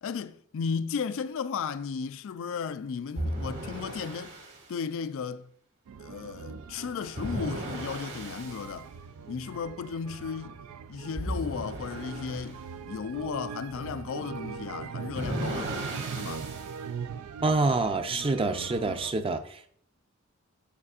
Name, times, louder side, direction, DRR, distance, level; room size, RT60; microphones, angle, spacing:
voice 1, 0.0-4.4 4.7-5.5 6.0-8.9 9.3-10.6 10.9-12.6 12.9-16.5, left 6 dB, 65° left, 0.4 m, -35 dB
sound 1, 3.2-4.6 7.1-8.7 11.2-12.5 15.1-16.7, right 1 dB, 60° right, 1.7 m, -35 dB
sound 2, 5.9-19.1, right 6 dB, 85° right, 0.4 m, -41 dB
voice 2, 17.4-19.7, right 3 dB, 25° right, 0.5 m, -27 dB
7.8 x 6.7 x 2.4 m
head